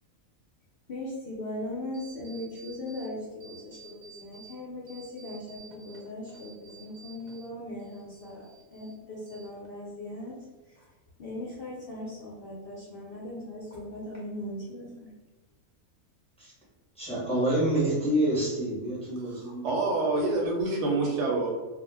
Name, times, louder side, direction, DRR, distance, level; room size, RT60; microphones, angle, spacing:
voice 1, 0.9-10.3 10.7-10.8 11.2-15.1, left 1 dB, 60° left, -5 dB, 0.6 m, -39 dB
sound 1, 1.9-3.1 3.4-4.5 4.9-7.5 7.8-8.9 9.3-9.9, right 5 dB, 90° right, 1.0 m, -52 dB
voice 2, 16.9-19.7, right 1 dB, 5° left, -7 dB, 0.5 m, -27 dB
voice 3, 19.6-21.5, right 2 dB, 65° right, -2 dB, 0.8 m, -26 dB
2.3 x 2.1 x 3.2 m, 1.2 s
omnidirectional pair, 1.4 m